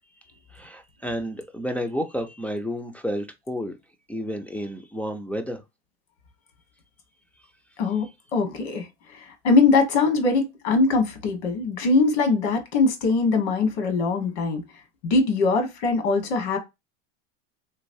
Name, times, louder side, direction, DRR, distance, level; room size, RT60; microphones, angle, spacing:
voice 1, 0.5-3.7 4.1-5.6, equal, 5° left, 0.3 m, -31 dB
voice 2, 7.8-8.9 9.4-14.6 15.0-16.6, left 3 dB, 75° left, 1.4 m, -22 dB
3.1 x 2.9 x 2.6 m
supercardioid pair, 110°, 34 cm